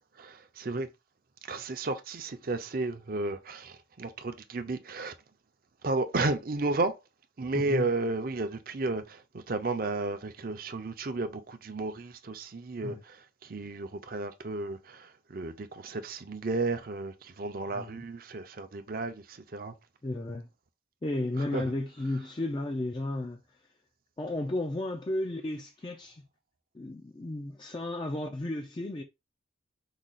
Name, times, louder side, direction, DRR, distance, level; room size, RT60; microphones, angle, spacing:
voice 1, 0.2-0.9 1.5-5.1 5.8-7.0 7.4-9.2 9.5-13.2 13.5-19.7 21.5-21.6, right 3 dB, 45° right, 0.6 m, -33 dB
voice 2, 7.5-7.9 12.8-13.0 17.7-18.0 20.0-20.5 21.0-23.4 24.2-26.2 26.7-29.0, left 2 dB, 25° left, 0.4 m, -33 dB
4.8 x 2.3 x 4.0 m
head